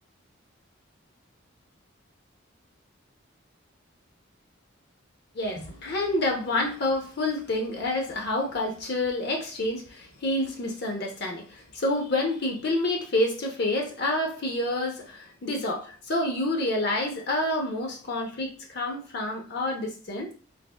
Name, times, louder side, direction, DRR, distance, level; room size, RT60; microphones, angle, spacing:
voice 1, 5.3-20.3, left 1 dB, 50° left, 0.6 m, -28 dB
4.1 x 2.4 x 2.2 m
head